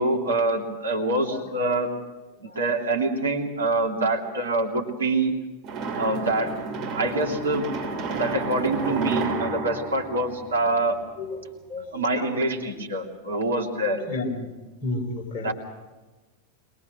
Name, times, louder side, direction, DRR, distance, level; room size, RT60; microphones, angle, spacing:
voice 1, 0.0-1.9 2.4-5.3 6.0-6.5 6.9-7.7 8.1-11.0 11.9-14.0 15.4-15.5, right 2 dB, 70° right, 2 dB, 2.8 m, -25 dB
sound 1, 5.6-11.0, right 4 dB, 30° right, 7.3 m, -31 dB
voice 2, 11.7-12.3 12.7-12.9 13.3-13.4 13.9-14.5 14.8-15.5, left 2 dB, 45° left, 2 dB, 5.1 m, -33 dB
23.0 x 21.5 x 6.2 m, 1.2 s
figure-of-eight pair, 90°, 0 cm